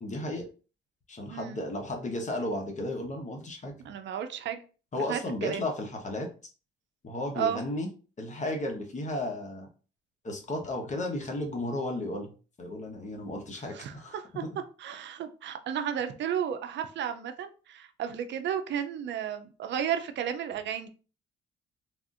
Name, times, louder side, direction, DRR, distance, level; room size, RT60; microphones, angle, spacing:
voice 1, 0.0-0.5 1.1-3.8 4.9-6.3 7.0-7.9 8.2-9.7 10.2-12.3 12.6-14.2 14.4-14.6, left 1 dB, 40° left, 3 dB, 0.9 m, -34 dB
voice 2, 1.3-1.6 3.8-4.6 5.1-5.6 7.3-7.6 13.7-14.4 14.8-20.9, right 9 dB, 65° right, 8 dB, 0.5 m, -33 dB
3.4 x 2.5 x 2.4 m, 0.36 s
cardioid pair, 90°, 20 cm